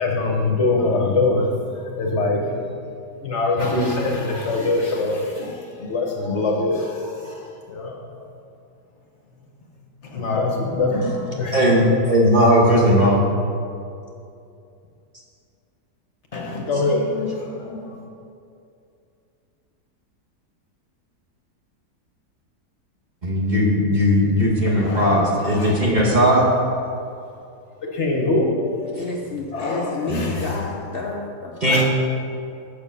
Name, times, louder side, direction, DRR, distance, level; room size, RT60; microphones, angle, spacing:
voice 1, 0.0-2.6 3.2-8.1 10.1-11.6 16.3-18.1 24.7-26.4 27.9-29.0 29.5-30.5 31.7-31.8, left 2 dB, 50° left, 0 dB, 1.1 m, -24 dB
voice 2, 11.5-13.3 23.2-26.4 30.1-30.4 31.6-31.8, equal, 30° right, -3 dB, 1.1 m, -17 dB
voice 3, 29.0-31.8, left 3 dB, 70° left, -1 dB, 0.5 m, -30 dB
7.0 x 6.9 x 5.5 m, 2.5 s
omnidirectional pair, 1.8 m